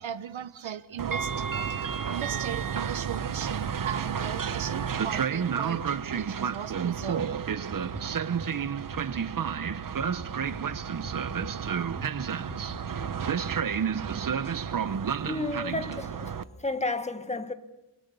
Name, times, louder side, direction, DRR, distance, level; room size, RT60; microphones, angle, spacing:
voice 1, 0.0-1.5 2.1-7.5, right 9 dB, 90° right, 1.2 m, -37 dB
Train, 1.0-16.4, right 7 dB, 45° right, 0.9 m, -31 dB
sound 1, 7.2-8.7 8.9-12.7 13.0-14.3, right 1 dB, 5° right, 4.5 m, -43 dB
voice 2, 15.3-16.4 16.6-17.5, left 2 dB, 15° left, 1.7 m, -31 dB
29.5 x 22.5 x 6.9 m
wide cardioid pair, 105°, 45 cm